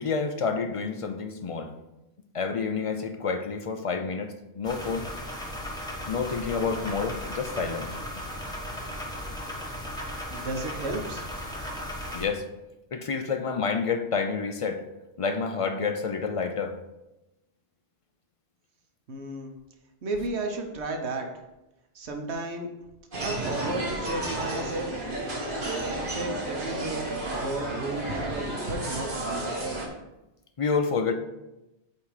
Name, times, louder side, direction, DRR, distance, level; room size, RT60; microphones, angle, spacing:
voice 1, 0.0-1.7 2.3-5.1 6.1-7.9 12.1-12.4 12.9-14.8 15.2-16.8 30.6-31.1, left 5 dB, 60° left, 6 dB, 0.3 m, -29 dB
sound 1, 4.6-12.3, equal, 5° left, 1.1 m, -36 dB
voice 2, 10.3-11.2 19.1-19.5 20.0-21.3 21.9-22.7 23.2-24.9 25.8-29.5, right 2 dB, 75° right, 3 dB, 1.2 m, -33 dB
sound 2, 23.1-29.9, right 2 dB, 50° right, 1.4 m, -32 dB
8.3 x 2.9 x 4.8 m, 0.97 s
omnidirectional pair, 1.1 m